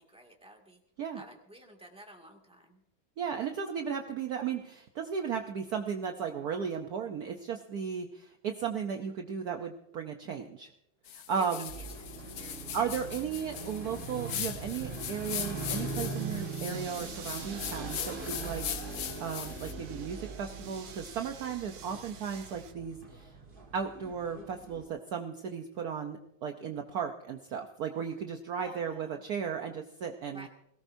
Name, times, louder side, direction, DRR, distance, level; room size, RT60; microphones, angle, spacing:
voice 1, 0.0-0.8 1.1-2.8 11.4-12.7 28.5-29.2 30.3-30.5, right 1 dB, 5° right, 1 dB, 2.0 m, -52 dB
voice 2, 3.2-10.7 11.1-11.7 12.7-23.3 23.7-30.5, right 7 dB, 60° right, 4 dB, 1.2 m, -35 dB
sound 1, 11.1-19.7, left 10 dB, 80° left, 1.6 m, -40 dB
sound 2, 11.7-24.8, right 3 dB, 30° right, 1.8 m, -41 dB
sound 3, 15.5-22.7, right 8 dB, 80° right, 1.8 m, -50 dB
21.5 x 18.0 x 2.7 m, 0.81 s
omnidirectional pair, 2.1 m